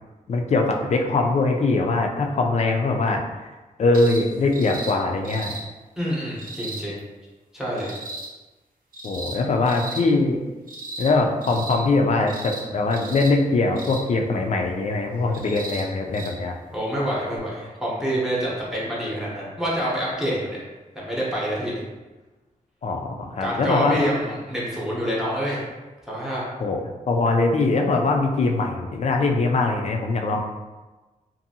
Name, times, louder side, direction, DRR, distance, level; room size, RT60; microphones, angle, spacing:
voice 1, 0.3-3.2 3.8-5.5 9.0-10.4 11.0-16.6 22.8-24.0 26.6-30.4, left 3 dB, 50° left, 2 dB, 0.4 m, -22 dB
sound 1, 3.9-4.2 4.5-4.9 5.2-5.6 6.4-6.8 7.8-8.3 8.9-9.4 9.7-10.0 10.7-11.1 11.4-11.8 12.3-12.6 12.9-13.3 13.8-14.0 15.3-15.8 16.1-16.3 17.4-17.5, right 2 dB, 70° right, 0.6 m, -35 dB
voice 2, 6.0-7.0 7.5-7.9 16.7-20.6 20.9-21.7 23.4-25.6 26.1-26.4, equal, 5° right, -7 dB, 0.8 m, -27 dB
2.6 x 2.5 x 2.7 m, 1.2 s
wide cardioid pair, 115°, 15 cm